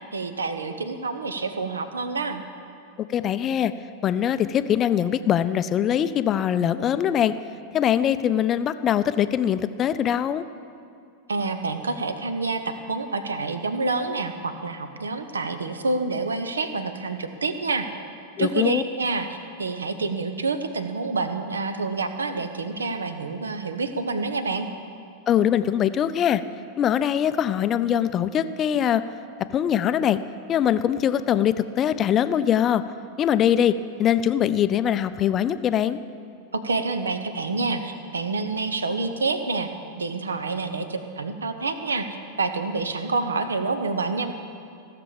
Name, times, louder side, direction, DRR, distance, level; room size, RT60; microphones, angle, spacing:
voice 1, 0.1-2.4 11.3-17.9 18.4-24.7 36.5-39.7 40.0-42.1 42.4-44.3, right 3 dB, 75° right, 9 dB, 0.8 m, -27 dB
voice 2, 3.1-3.7 4.0-7.3 7.7-10.4 18.4-18.8 25.3-26.4 26.8-29.0 29.5-30.2 30.5-32.8 33.2-36.0, left 10 dB, 30° left, 13 dB, 0.4 m, -22 dB
16.0 x 6.9 x 7.3 m, 2.5 s
figure-of-eight pair, 90°, 0 cm